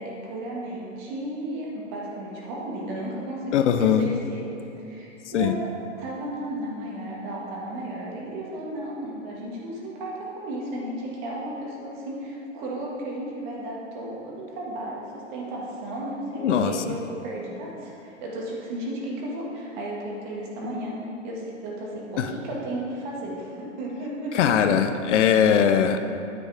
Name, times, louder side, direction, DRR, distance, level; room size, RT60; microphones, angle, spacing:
voice 1, 0.0-4.4 4.8-5.7 6.0-20.9 21.2-25.2, right 1 dB, 40° right, -4 dB, 2.0 m, -34 dB
voice 2, 3.5-4.0 5.3-5.5 16.4-16.7 22.2-22.3 24.3-26.0, left 8 dB, 70° left, 8 dB, 0.7 m, -20 dB
9.4 x 8.1 x 3.6 m, 2.7 s
hypercardioid pair, 150°, 38 cm